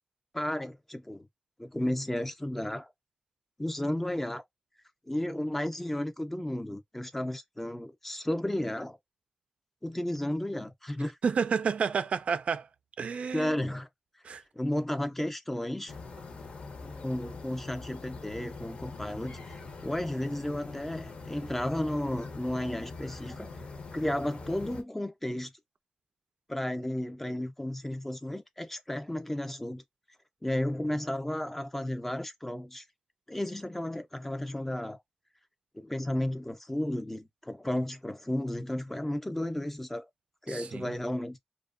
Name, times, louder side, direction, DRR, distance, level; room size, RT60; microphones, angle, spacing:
voice 1, 0.3-1.3 1.6-2.9 3.6-4.4 5.1-9.0 9.8-11.2 13.3-13.9 14.5-15.9 16.8-19.4 19.8-23.5 23.9-25.5 26.5-29.8 30.4-32.8 33.3-35.0 35.7-40.1 40.5-41.4, left 1 dB, 10° left, 0.4 m, -33 dB
voice 2, 11.2-12.7 13.0-13.6 14.2-14.4 40.5-40.9, right 6 dB, 85° right, 0.3 m, -30 dB
sound 1, 15.9-24.8, left 3 dB, 70° left, 0.6 m, -43 dB
2.7 x 2.1 x 2.4 m
wide cardioid pair, 145°, 2 cm